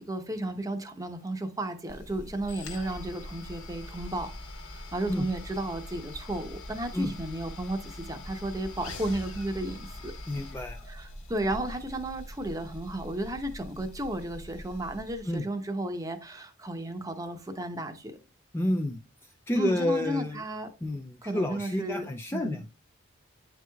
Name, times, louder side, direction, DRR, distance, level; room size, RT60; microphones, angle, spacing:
voice 1, 0.0-4.3 4.6-10.1 10.9-18.2 19.5-20.7 21.2-22.6, right 1 dB, 15° right, 0.7 m, -34 dB
sound 1, 1.9-15.4, left 1 dB, 85° left, 1.4 m, -43 dB
voice 2, 10.3-10.8 15.3-15.4 18.5-20.4 20.8-22.7, left 1 dB, 10° left, 0.3 m, -30 dB
9.2 x 4.6 x 2.3 m
head